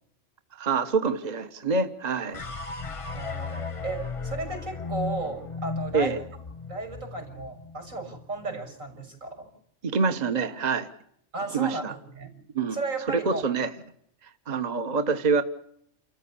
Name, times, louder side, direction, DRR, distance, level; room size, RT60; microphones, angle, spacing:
voice 1, 0.6-2.4 5.9-6.2 9.8-10.9 11.5-11.9 12.5-12.8 13.1-13.7 14.2-15.4, right 4 dB, 35° right, 10 dB, 1.3 m, -26 dB
sound 1, 2.3-8.7, left 4 dB, 30° left, 0.9 m, -36 dB
voice 2, 3.1-6.2 6.7-9.5 11.3-12.3 12.7-13.4, right 3 dB, 85° right, 4 dB, 6.7 m, -34 dB
29.5 x 14.5 x 8.6 m, 0.70 s
omnidirectional pair, 1.3 m